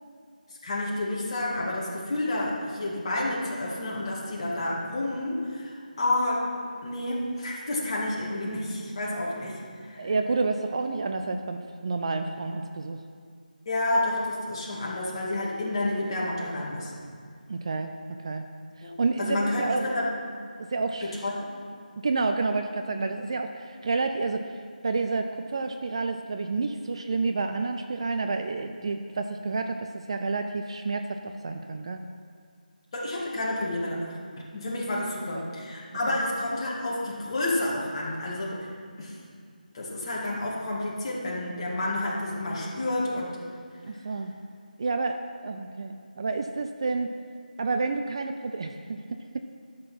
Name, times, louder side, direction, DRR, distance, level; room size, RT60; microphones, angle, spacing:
voice 1, 0.6-6.5 6.8-10.1 13.7-16.9 18.8-18.9 19.2-20.1 21.0-21.3 32.9-34.2 34.5-38.7 39.0-39.2 39.7-43.4, left 1 dB, 30° left, -4 dB, 2.1 m, -30 dB
voice 2, 10.0-13.0 17.5-18.4 18.8-19.8 20.6-21.2 22.0-24.5 24.8-32.0 35.3-35.4 36.1-36.2 43.9-44.3 44.8-47.1 47.6-49.4, right 3 dB, 35° right, 6 dB, 0.4 m, -29 dB
12.0 x 6.5 x 5.5 m, 2.1 s
figure-of-eight pair, 160°, 5 cm